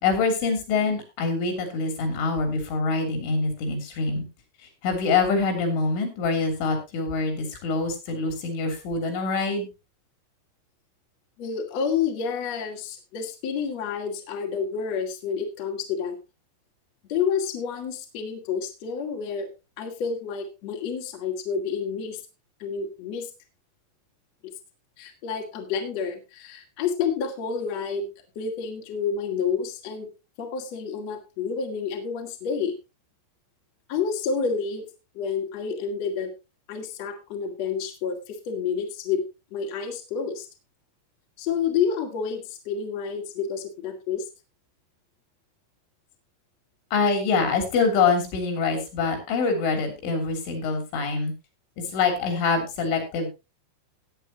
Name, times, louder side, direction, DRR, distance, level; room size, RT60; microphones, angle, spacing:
voice 1, 0.0-4.3 4.8-9.7 46.9-51.3 51.8-53.3, left 4 dB, 70° left, 5 dB, 5.4 m, -25 dB
voice 2, 11.4-16.2 17.1-19.5 19.8-22.2 22.6-23.3 25.0-28.1 28.4-30.1 30.4-32.7 33.9-34.9 35.1-36.3 36.7-39.2 39.5-40.5 41.4-44.2, left 6 dB, 45° left, 2 dB, 2.3 m, -29 dB
17.0 x 9.2 x 2.9 m, 0.27 s
omnidirectional pair, 5.7 m